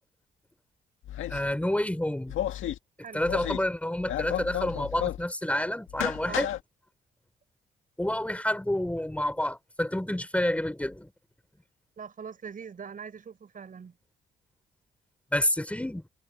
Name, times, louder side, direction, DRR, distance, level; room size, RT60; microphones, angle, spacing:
sound 1, 1.0-1.5 2.3-2.8 3.2-3.7 4.0-5.3 5.9-6.6, left 12 dB, 85° left, 1.8 m, -32 dB
voice 1, 1.3-2.3 3.1-6.5 8.0-11.1 15.3-16.0, left 1 dB, 5° left, 5.2 m, -29 dB
voice 2, 12.0-14.0, right 6 dB, 45° right, 5.6 m, -42 dB
cardioid pair, 90°, 20 cm